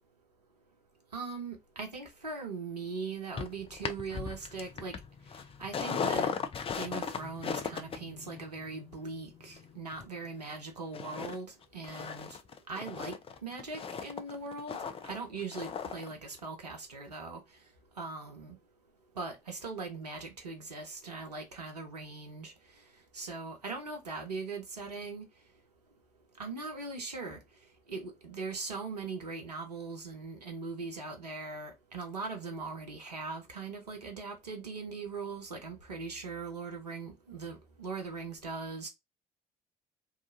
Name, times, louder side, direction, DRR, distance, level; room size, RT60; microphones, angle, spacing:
voice 1, 1.1-5.0 5.6-6.3 6.8-12.4 12.7-14.8 15.0-17.4 18.0-18.6 19.2-22.5 23.1-25.3 26.4-27.4 27.9-38.9, right 4 dB, 85° right, 0.5 m, -40 dB
sound 1, 3.4-10.6 10.9-11.4 11.6-16.1 16.4-16.5, left 6 dB, 30° left, 0.4 m, -38 dB
2.7 x 2.3 x 2.5 m
figure-of-eight pair, 45°, 20 cm